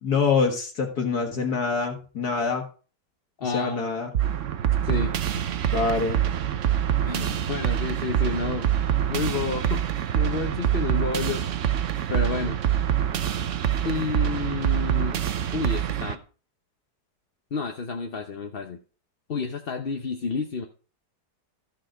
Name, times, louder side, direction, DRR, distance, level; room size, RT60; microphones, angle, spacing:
voice 1, 0.0-2.7 3.4-4.1 5.7-6.2, left 5 dB, 65° left, 3 dB, 2.1 m, -25 dB
voice 2, 3.4-3.8 4.8-5.5 7.0-8.7 9.1-9.8 10.1-11.5 12.1-12.6 13.2-13.3 13.8-15.3 15.5-16.2 17.5-18.8 19.3-20.6, left 4 dB, 40° left, 3 dB, 0.9 m, -30 dB
sound 1, 4.1-16.1, right 10 dB, 55° right, 1.0 m, -25 dB
14.0 x 6.5 x 5.0 m, 0.38 s
omnidirectional pair, 1.9 m